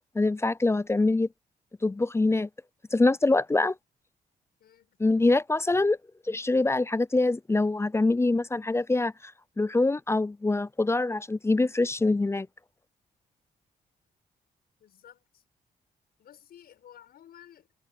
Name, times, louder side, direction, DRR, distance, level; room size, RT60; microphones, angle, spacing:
voice 1, 0.2-1.3 1.8-2.5 2.9-3.7 5.0-6.0 6.3-9.1 9.6-12.5, left 2 dB, 15° left, 0.5 m, -24 dB
voice 2, 4.6-5.0 14.8-15.4 16.2-17.7, left 10 dB, 75° left, 7.6 m, -53 dB
cardioid pair, 70°, 16 cm